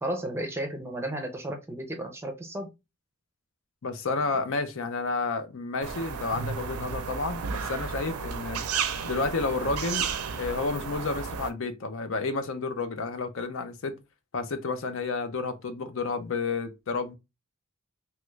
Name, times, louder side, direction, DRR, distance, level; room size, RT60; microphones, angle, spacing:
voice 1, 0.0-2.7, right 1 dB, 10° right, 0.5 m, -33 dB
voice 2, 3.8-8.6 9.0-10.1 10.4-13.9 14.3-17.2, left 3 dB, 60° left, 0.5 m, -31 dB
sound 1, 5.8-11.5, right 6 dB, 90° right, 0.5 m, -33 dB
3.0 x 2.4 x 3.1 m
head